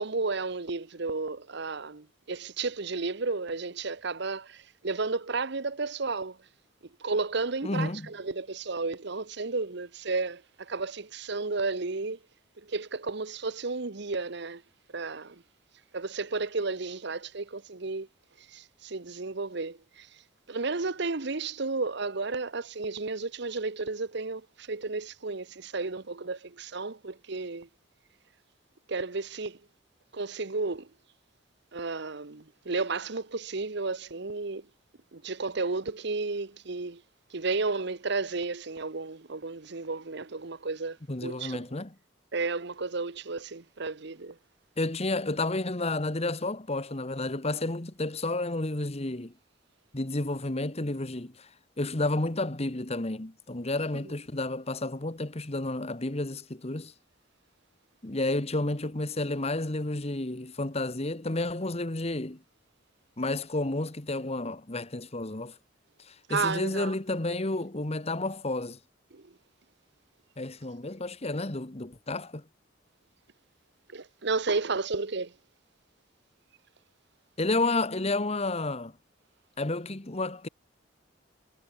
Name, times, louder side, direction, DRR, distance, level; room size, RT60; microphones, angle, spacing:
voice 1, 0.0-6.4 7.0-12.2 12.6-14.6 14.9-15.4 15.9-18.1 18.5-20.1 20.5-27.7 28.9-29.6 30.1-30.9 31.7-34.6 35.1-37.0 37.3-41.6 42.3-44.4 66.3-66.9 69.1-69.3 73.9-75.3, right 3 dB, 60° right, 1.1 m, -32 dB
voice 2, 7.6-8.1 41.1-41.9 44.8-49.3 49.9-51.5 51.8-56.9 58.0-62.4 63.2-65.6 66.0-68.8 70.4-72.4 77.4-78.9 79.6-80.5, left 2 dB, 30° left, 1.4 m, -31 dB
head